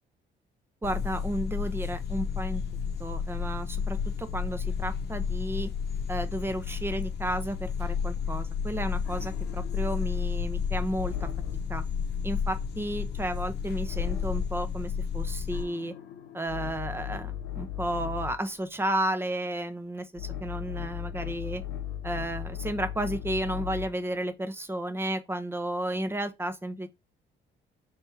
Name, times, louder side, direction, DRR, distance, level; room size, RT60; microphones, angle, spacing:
sound 1, 0.8-15.6, left 6 dB, 55° left, 0.9 m, -32 dB
voice 1, 0.8-2.6 3.0-5.7 6.1-11.3 11.7-11.8 12.2-15.9 16.3-21.6 22.0-26.9, right 1 dB, 10° right, 0.8 m, -32 dB
sound 2, 9.1-11.8 13.8-14.7 15.5-18.5 20.2-24.0, left 10 dB, 90° left, 0.8 m, -37 dB
3.6 x 2.9 x 4.5 m
cardioid pair, 90°, 20 cm